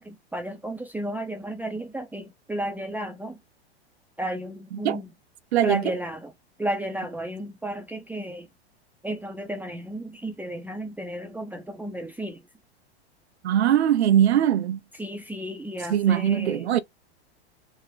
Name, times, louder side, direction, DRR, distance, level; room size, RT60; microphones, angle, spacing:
voice 1, 0.0-3.4 4.2-5.1 5.6-6.3 6.6-8.5 9.0-12.4 15.0-16.6, right 1 dB, 5° right, 0.5 m, -33 dB
voice 2, 5.5-5.9 13.4-14.8 15.9-16.8, right 10 dB, 80° right, 0.6 m, -21 dB
3.5 x 2.1 x 3.8 m
hypercardioid pair, 100°, 32 cm